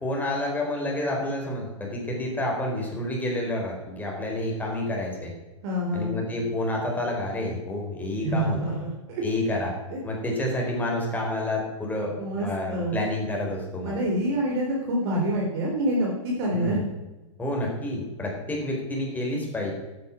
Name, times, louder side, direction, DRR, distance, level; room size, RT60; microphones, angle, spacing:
voice 1, 0.0-5.3 5.9-8.6 9.2-9.7 10.0-13.9 16.5-16.9 17.4-19.7, left 1 dB, 10° left, -1 dB, 4.3 m, -29 dB
voice 2, 5.6-6.2 8.2-9.2 9.9-10.0 12.2-13.0 13.8-16.8, right 1 dB, 55° right, -2 dB, 3.6 m, -27 dB
11.5 x 9.4 x 6.1 m, 1.1 s
hypercardioid pair, 120°, 16 cm